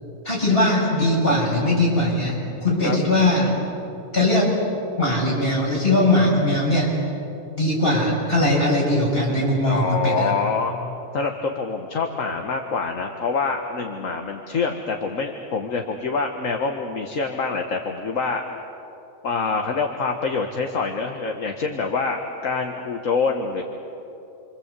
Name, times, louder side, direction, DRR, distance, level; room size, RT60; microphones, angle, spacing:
voice 1, 0.2-3.5 4.1-4.5 5.0-6.9 7.6-10.3, left 1 dB, 45° left, -4 dB, 7.8 m, -20 dB
voice 2, 9.7-10.7 11.1-18.4 19.2-23.6, left 4 dB, 70° left, 3 dB, 1.8 m, -25 dB
28.5 x 25.5 x 8.3 m, 2.8 s
omnidirectional pair, 1.4 m